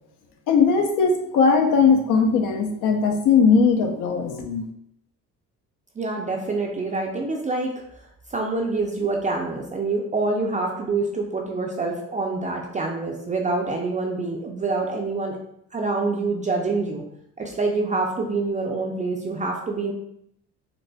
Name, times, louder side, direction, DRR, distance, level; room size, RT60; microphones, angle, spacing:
voice 1, 0.5-4.7, left 5 dB, 80° left, 4 dB, 0.7 m, -19 dB
voice 2, 6.0-15.4 15.7-17.0 17.4-19.9, right 3 dB, 25° right, 0 dB, 0.4 m, -26 dB
3.9 x 2.6 x 2.2 m, 0.73 s
cardioid pair, 105°, 32 cm